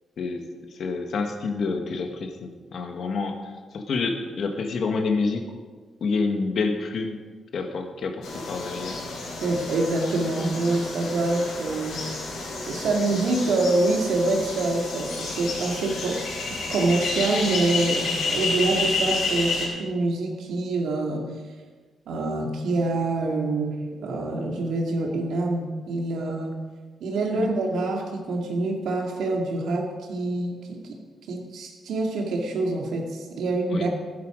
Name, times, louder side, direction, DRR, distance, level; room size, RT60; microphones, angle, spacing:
voice 1, 0.7-5.5 6.0-7.2 7.5-9.0 27.3-27.5 33.7-33.9, left 4 dB, 50° left, 5 dB, 1.4 m, -28 dB
sound 1, 8.2-19.7, left 3 dB, 85° left, 5.0 m, -30 dB
voice 2, 9.4-12.0 12.7-16.2 16.7-21.3 22.1-26.5 27.0-31.0 31.3-33.9, right 2 dB, 85° right, 1 dB, 2.3 m, -26 dB
15.5 x 11.0 x 5.1 m, 1.5 s
wide cardioid pair, 180°, 0 cm